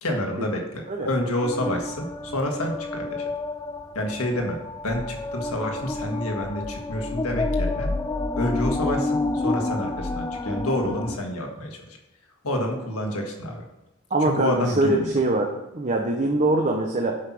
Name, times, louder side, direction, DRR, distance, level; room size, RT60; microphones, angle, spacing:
voice 1, 0.0-3.2 3.9-4.6 4.8-7.9 8.4-12.0 12.4-13.6 14.2-15.2, left 1 dB, 90° left, 2 dB, 1.6 m, -28 dB
sound 1, 1.4-11.2, left 2 dB, 15° left, 0.3 m, -29 dB
voice 2, 14.1-17.2, right 2 dB, 30° right, 1 dB, 0.8 m, -23 dB
8.2 x 5.7 x 6.0 m, 0.97 s
head